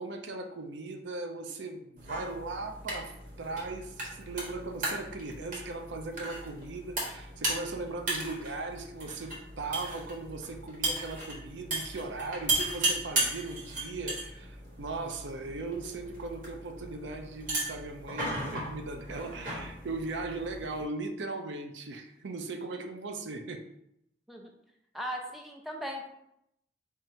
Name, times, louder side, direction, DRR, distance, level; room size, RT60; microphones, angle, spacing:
voice 1, 0.0-23.6, right 3 dB, 80° right, 5 dB, 0.5 m, -38 dB
sound 1, 2.0-20.8, right 2 dB, 45° right, 1.4 m, -36 dB
voice 2, 24.9-26.1, equal, ahead, 0 dB, 0.5 m, -38 dB
4.6 x 2.5 x 4.4 m, 0.77 s
head